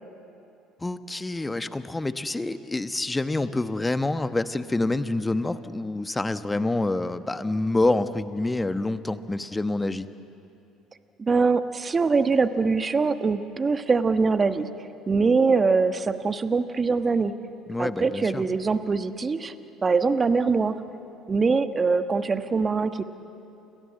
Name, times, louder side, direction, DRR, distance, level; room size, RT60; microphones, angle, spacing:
voice 1, 0.8-10.1 17.7-18.4, left 2 dB, 15° left, 11 dB, 1.2 m, -27 dB
voice 2, 11.2-14.7 15.1-17.3 17.8-19.5 19.8-20.8 21.3-23.0, right 4 dB, 30° right, 10 dB, 1.4 m, -23 dB
29.0 x 23.0 x 7.7 m, 2.8 s
hypercardioid pair, 60°, 0 cm